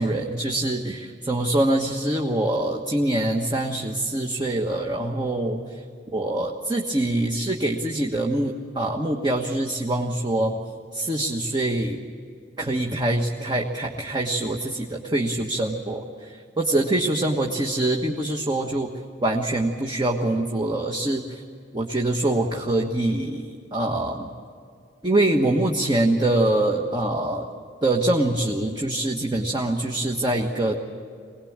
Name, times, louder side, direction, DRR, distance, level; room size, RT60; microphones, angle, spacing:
voice 1, 0.0-5.8 6.1-10.5 10.9-12.0 12.6-18.9 19.2-21.4 21.7-24.3 25.0-27.4 27.8-30.8, right 1 dB, 25° right, 0 dB, 1.4 m, -24 dB
24.5 x 19.5 x 8.8 m, 2.3 s
head